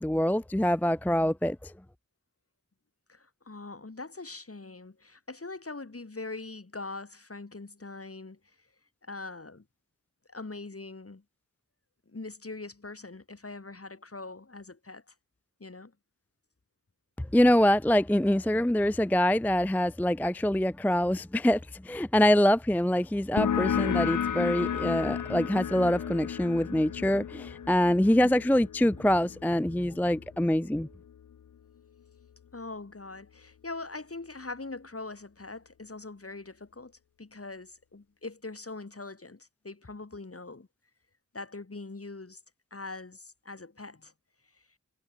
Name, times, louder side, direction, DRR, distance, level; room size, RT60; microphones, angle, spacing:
voice 1, 0.0-1.7 17.2-30.9, left 1 dB, 5° left, 0.4 m, -25 dB
voice 2, 3.1-8.4 9.0-9.6 10.3-11.2 12.1-15.1 15.6-15.9 28.2-28.4 32.5-40.7 41.3-42.4 42.7-44.1, left 3 dB, 45° left, 2.7 m, -42 dB
sound 1, 23.4-30.6, left 8 dB, 75° left, 0.5 m, -33 dB
wide cardioid pair, 60°, 31 cm